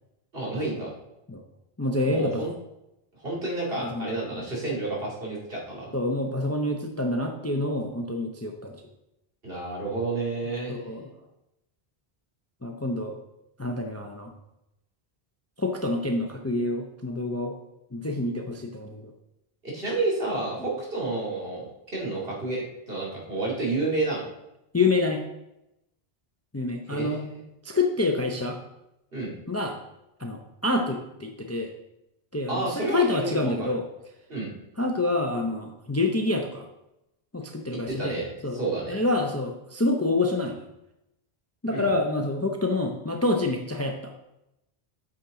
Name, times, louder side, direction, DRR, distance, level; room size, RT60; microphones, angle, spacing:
voice 1, 0.3-0.9 2.0-2.5 3.2-5.9 9.4-10.8 19.6-21.7 21.9-24.2 26.9-27.4 29.1-29.3 32.5-33.7 34.3-34.5 37.7-39.0 41.7-41.9, right 2 dB, 65° right, -4 dB, 2.6 m, -30 dB
voice 2, 1.8-2.5 3.8-4.1 4.3-4.4 5.9-8.8 10.7-11.1 12.6-13.1 13.6-14.3 15.6-17.5 17.9-19.1 20.6-20.7 24.7-25.2 26.5-27.2 27.6-28.6 29.5-29.8 30.2-31.7 32.3-33.8 34.8-36.7 37.3-38.1 38.4-38.6 38.9-40.6 41.6-44.1, left 2 dB, 20° left, 3 dB, 0.5 m, -27 dB
8.5 x 6.3 x 3.8 m, 0.89 s
omnidirectional pair, 1.1 m